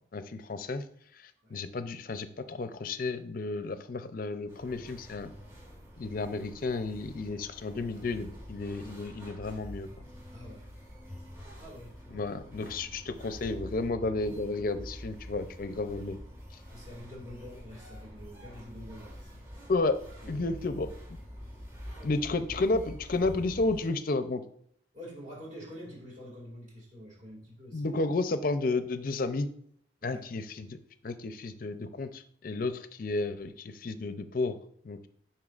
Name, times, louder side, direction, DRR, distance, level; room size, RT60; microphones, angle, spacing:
voice 1, 0.1-0.8 1.1-5.3 6.0-9.9 12.1-16.2 19.7-20.0 20.3-20.9 22.0-24.4 27.7-29.5 30.0-30.8 31.0-34.6 34.8-35.1, left 3 dB, 50° left, 10 dB, 0.5 m, -32 dB
sound 1, 4.5-23.9, equal, 15° right, 1.6 m, -46 dB
voice 2, 10.3-10.7 11.6-12.8 16.7-19.4 20.2-20.6 22.0-22.4 24.9-27.9 30.0-30.3, equal, 40° right, -4 dB, 2.1 m, -47 dB
11.0 x 4.5 x 2.4 m, 0.64 s
head